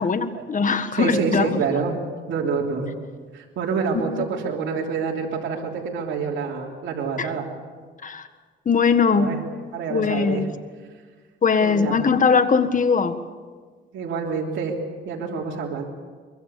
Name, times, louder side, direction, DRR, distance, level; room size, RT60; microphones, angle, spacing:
voice 1, 0.0-1.6 7.2-7.3 8.0-8.3 8.6-9.3 9.9-10.5 11.4-13.2, left 5 dB, 40° left, 10 dB, 1.7 m, -20 dB
voice 2, 0.9-2.0 2.3-2.9 3.3-7.5 9.1-9.4 9.7-10.4 11.6-12.0 13.9-14.8 15.0-15.9, right 5 dB, 75° right, -2 dB, 3.3 m, -27 dB
23.0 x 23.0 x 7.1 m, 1.5 s
cardioid pair, 90°, 20 cm